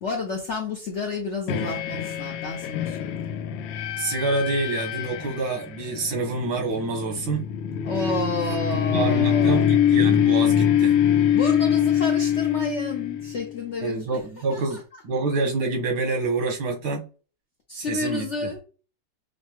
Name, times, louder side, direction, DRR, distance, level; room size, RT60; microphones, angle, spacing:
voice 1, 0.0-3.3 7.8-9.6 11.3-14.0 14.5-14.8 17.7-18.6, left 3 dB, 65° left, 0.7 m, -30 dB
sound 1, 1.5-13.5, left 9 dB, 85° left, 1.3 m, -24 dB
voice 2, 4.0-7.4 8.4-11.0 13.8-17.1 17.7-18.5, right 3 dB, 90° right, 1.9 m, -27 dB
5.7 x 2.1 x 2.9 m
omnidirectional pair, 2.0 m